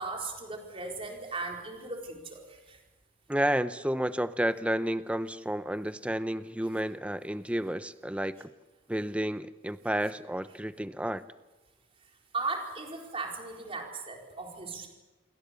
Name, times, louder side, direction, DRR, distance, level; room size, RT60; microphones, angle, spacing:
voice 1, 0.0-2.8 12.3-14.9, right 3 dB, 30° right, 1 dB, 4.5 m, -37 dB
voice 2, 3.3-8.5 8.9-11.2, right 1 dB, 5° right, 12 dB, 0.7 m, -31 dB
28.5 x 23.0 x 7.0 m, 1.2 s
head